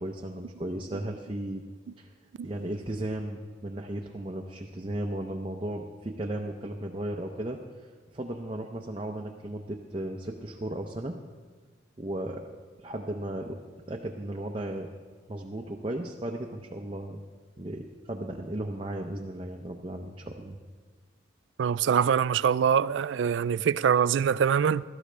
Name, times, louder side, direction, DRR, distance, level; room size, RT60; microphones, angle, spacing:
voice 1, 0.0-1.7 2.0-2.1 2.4-11.2 12.0-12.4 12.8-13.6 13.9-14.9 15.3-17.2 17.6-20.6, right 1 dB, 25° right, 0.6 m, -35 dB
voice 2, 21.6-24.8, right 7 dB, 70° right, 0.3 m, -24 dB
17.0 x 13.0 x 3.3 m
head